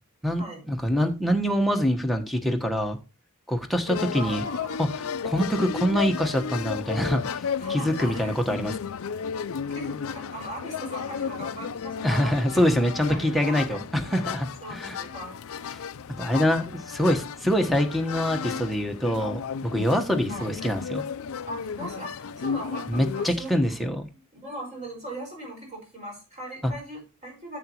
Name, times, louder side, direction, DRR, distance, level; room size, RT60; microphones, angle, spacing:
voice 1, 0.2-3.0 3.5-4.4 4.8-7.2 7.7-8.8 12.0-15.0 16.2-21.0 22.9-24.1, equal, ahead, 6 dB, 1.1 m, -25 dB
sound 1, 3.9-23.3, left 6 dB, 65° left, 0.4 m, -34 dB
voice 2, 4.1-4.8 7.6-8.3 9.7-12.7 12.9-14.1 14.6-15.3 16.3-16.6 20.3-20.5 21.5-23.7 24.4-27.6, equal, 30° right, 0 dB, 5.2 m, -39 dB
10.5 x 8.2 x 2.9 m, 0.29 s
head